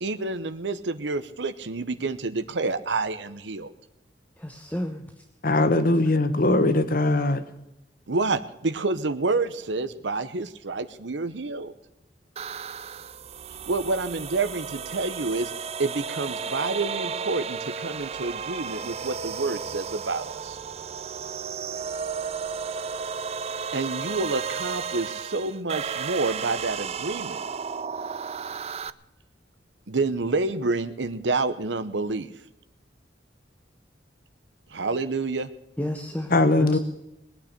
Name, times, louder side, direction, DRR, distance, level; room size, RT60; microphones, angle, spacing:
voice 1, 0.0-3.7 8.1-11.7 13.7-20.6 23.7-27.4 29.9-32.3 34.7-35.5, right 3 dB, 90° right, 11 dB, 0.9 m, -28 dB
voice 2, 4.4-5.2 35.8-36.3 36.6-36.8, left 1 dB, 10° left, 5 dB, 1.1 m, -32 dB
voice 3, 5.4-7.4 36.3-36.8, left 2 dB, 55° left, 12 dB, 1.2 m, -20 dB
sound 1, 12.4-28.9, right 6 dB, 35° right, 0.5 m, -33 dB
19.5 x 9.1 x 6.7 m, 0.90 s
head